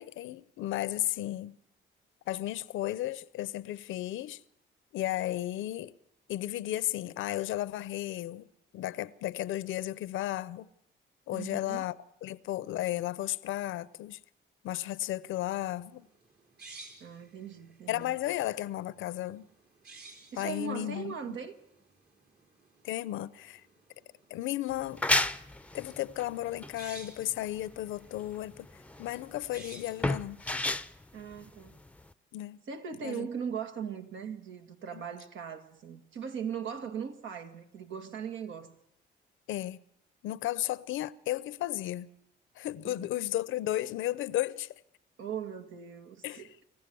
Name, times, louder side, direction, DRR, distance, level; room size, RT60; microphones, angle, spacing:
voice 1, 0.0-1.6 2.3-4.4 4.9-5.9 6.3-8.5 8.7-10.7 11.3-11.9 12.2-14.2 14.6-16.1 17.9-19.5 20.4-21.4 22.8-23.6 24.3-25.0 25.7-28.7 29.0-30.4 32.3-32.6 33.0-33.3 34.9-35.0 39.5-39.8 40.2-42.1 42.6-44.7 46.2-46.5, left 14 dB, 85° left, 0.7 m, -34 dB
voice 2, 11.3-11.8 17.0-18.1 20.3-21.6 31.1-31.8 32.7-38.8 42.8-43.1 45.2-46.6, right 7 dB, 75° right, 2.0 m, -39 dB
sound 1, 15.4-30.0, right 3 dB, 55° right, 4.3 m, -55 dB
sound 2, 24.7-32.1, left 2 dB, 5° left, 0.6 m, -33 dB
26.0 x 14.5 x 7.0 m
cardioid pair, 90°, 20 cm